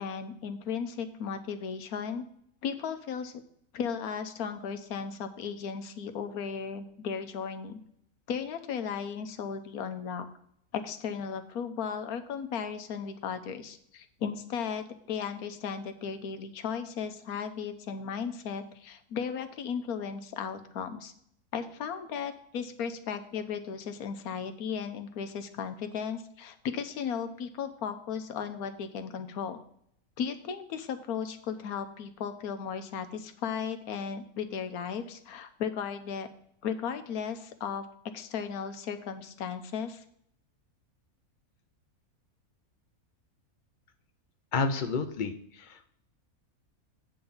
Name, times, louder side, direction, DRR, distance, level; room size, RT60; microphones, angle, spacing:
voice 1, 0.0-2.2 2.6-3.4 3.7-7.8 8.3-10.3 10.7-21.1 21.5-29.6 30.2-36.3 36.6-37.9 38.1-40.0, left 7 dB, 85° left, 8 dB, 1.3 m, -35 dB
voice 2, 44.5-45.9, left 4 dB, 45° left, 8 dB, 0.7 m, -30 dB
8.7 x 3.9 x 7.1 m, 0.68 s
omnidirectional pair, 1.5 m